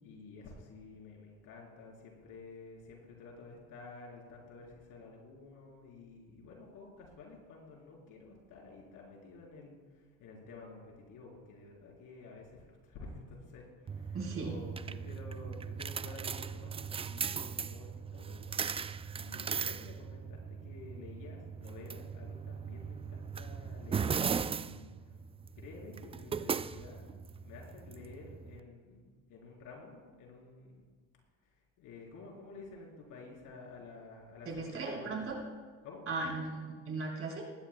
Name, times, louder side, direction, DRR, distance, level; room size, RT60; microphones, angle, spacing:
voice 1, 0.0-18.7 19.1-25.2 25.6-27.2 27.4-30.9 31.4-35.2 35.8-36.0, left 3 dB, 75° left, -1 dB, 4.0 m, -51 dB
sound 1, 13.9-28.6, right 6 dB, 20° right, 0.3 m, -38 dB
voice 2, 14.1-14.5 34.5-35.4 36.1-37.4, right 3 dB, 45° right, -2 dB, 4.6 m, -37 dB
19.5 x 14.5 x 2.3 m, 1.5 s
supercardioid pair, 85°, 32 cm